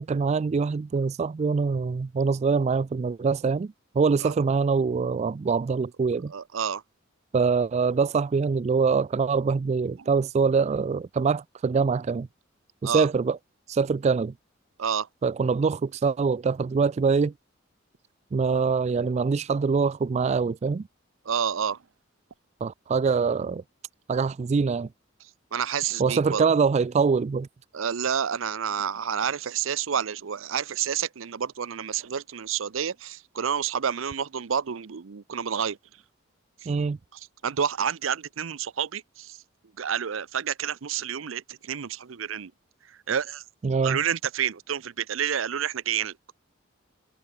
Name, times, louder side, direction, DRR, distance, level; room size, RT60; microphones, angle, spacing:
voice 1, 0.0-6.3 7.3-12.3 12.8-13.4 13.7-14.3 15.2-17.3 18.3-20.9 22.6-23.6 24.1-24.9 26.0-27.5 36.7-37.0 43.6-44.0, right 5 dB, 35° right, 0.3 m, -24 dB
voice 2, 6.3-6.8 12.8-13.1 14.8-15.1 21.3-21.8 25.5-26.5 27.7-35.8 37.1-39.4 39.8-42.5 43.1-43.4 43.8-46.1, right 8 dB, 85° right, 0.6 m, -29 dB
head